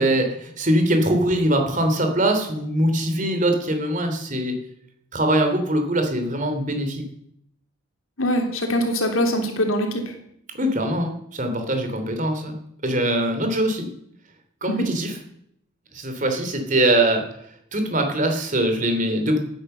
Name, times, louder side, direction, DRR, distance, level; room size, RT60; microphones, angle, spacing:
voice 1, 0.0-4.6 5.1-7.0 10.5-12.6 12.8-13.9 14.6-15.1 15.9-17.2 17.7-19.4, right 1 dB, 40° right, 5 dB, 3.0 m, -22 dB
voice 2, 8.2-10.1 14.7-14.9, equal, 85° left, 3 dB, 3.2 m, -23 dB
16.0 x 10.0 x 6.7 m, 0.73 s
head